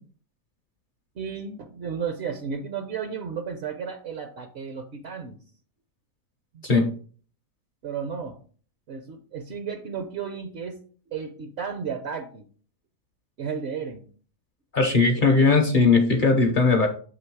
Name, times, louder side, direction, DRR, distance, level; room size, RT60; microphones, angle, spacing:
voice 1, 1.1-5.4 6.5-6.6 7.8-8.4 8.9-10.8 11.1-12.5 13.4-14.1, right 6 dB, 60° right, 6 dB, 0.7 m, -33 dB
voice 2, 14.7-16.9, left 3 dB, 50° left, 4 dB, 0.6 m, -19 dB
7.8 x 3.1 x 4.6 m, 0.44 s
omnidirectional pair, 1.7 m